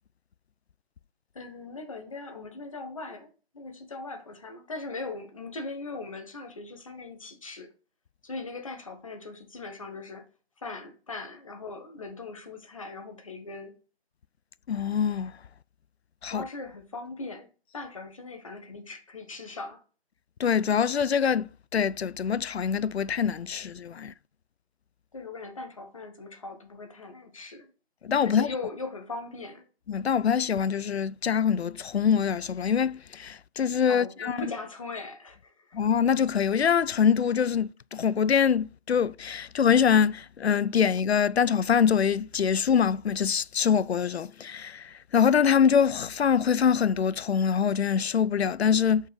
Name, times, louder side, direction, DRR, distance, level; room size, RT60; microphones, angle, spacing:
voice 1, 1.3-7.7 8.2-10.2 10.6-13.8 16.3-17.5 17.7-19.8 25.1-27.7 28.2-29.6 33.9-35.8, left 3 dB, 30° left, 1.2 m, -39 dB
voice 2, 14.7-15.3 16.2-16.4 20.4-24.1 28.0-28.5 29.9-34.5 35.7-49.1, left 7 dB, 80° left, 0.5 m, -24 dB
5.5 x 4.7 x 5.1 m
figure-of-eight pair, 160°, 32 cm